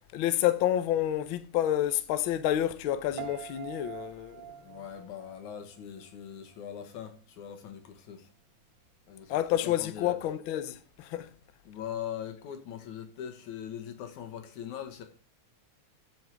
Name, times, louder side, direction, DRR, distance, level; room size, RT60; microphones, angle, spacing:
voice 1, 0.1-4.5 9.3-11.3, left 12 dB, 70° left, 1.2 m, -29 dB
Piano, 3.2-6.3 6.5-7.0, right 13 dB, 90° right, 2.3 m, -45 dB
voice 2, 4.6-8.3 9.1-9.4 9.6-10.2 11.7-15.0, left 9 dB, 90° left, 2.9 m, -41 dB
7.9 x 7.6 x 7.5 m
omnidirectional pair, 3.3 m